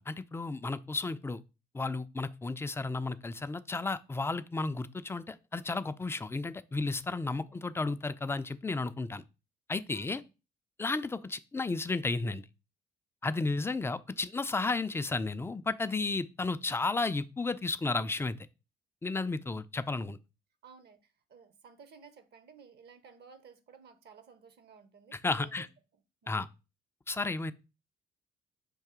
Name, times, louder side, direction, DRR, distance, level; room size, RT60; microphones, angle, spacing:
voice 1, 0.0-1.4 1.7-9.2 9.7-10.2 10.8-12.5 13.2-18.4 19.0-20.2 25.1-25.7 26.3-26.5 27.1-27.5, left 3 dB, 10° left, 0.3 m, -33 dB
voice 2, 9.9-10.3 20.6-25.7 26.2-26.5, right 6 dB, 50° right, 0.7 m, -56 dB
5.5 x 2.7 x 3.6 m
hypercardioid pair, 50°, 21 cm